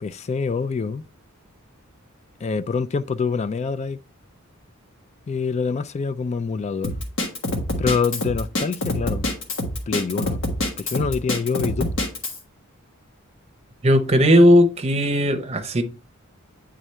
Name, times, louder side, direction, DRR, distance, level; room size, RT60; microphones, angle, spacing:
voice 1, 0.0-1.0 2.4-4.0 5.3-6.9 7.8-9.2 9.9-10.4 10.8-11.9, left 5 dB, 30° left, 0.3 m, -25 dB
Drum kit, 6.8-12.4, left 1 dB, 65° left, 1.4 m, -26 dB
voice 2, 13.8-15.8, equal, 30° right, 0.8 m, -16 dB
8.9 x 3.6 x 3.2 m
head